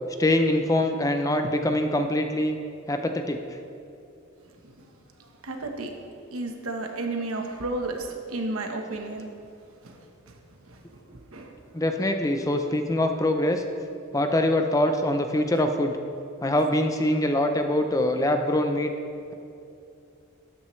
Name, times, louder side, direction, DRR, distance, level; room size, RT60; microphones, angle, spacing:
voice 1, 0.2-2.6 2.9-3.4 11.7-13.6 14.1-16.0 16.4-18.9, left 1 dB, 15° left, 6 dB, 0.5 m, -24 dB
voice 2, 5.2-6.0 6.3-9.3 9.8-10.0 10.3-10.4 10.7-10.8 11.1-11.5, right 2 dB, 85° right, 3 dB, 1.2 m, -32 dB
13.0 x 10.5 x 3.2 m, 2.6 s
head